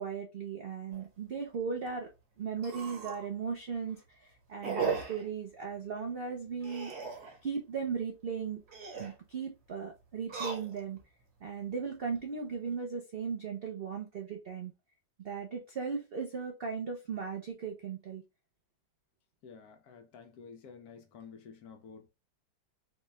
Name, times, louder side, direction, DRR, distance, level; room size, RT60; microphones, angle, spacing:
voice 1, 0.0-2.1 2.4-6.9 7.4-8.6 9.0-11.0 11.4-14.7 15.2-18.2, right 6 dB, 75° right, 0.5 m, -37 dB
sound 1, 0.9-1.1 1.5-1.6 1.9-2.0 2.6-3.3 3.7-4.0 4.6-5.3 6.6-7.4 8.6-9.2 10.2-11.0 11.6-12.2, right 5 dB, 45° right, 1.1 m, -37 dB
voice 2, 19.4-22.1, left 6 dB, 70° left, 1.1 m, -51 dB
4.2 x 2.2 x 3.1 m
omnidirectional pair, 1.9 m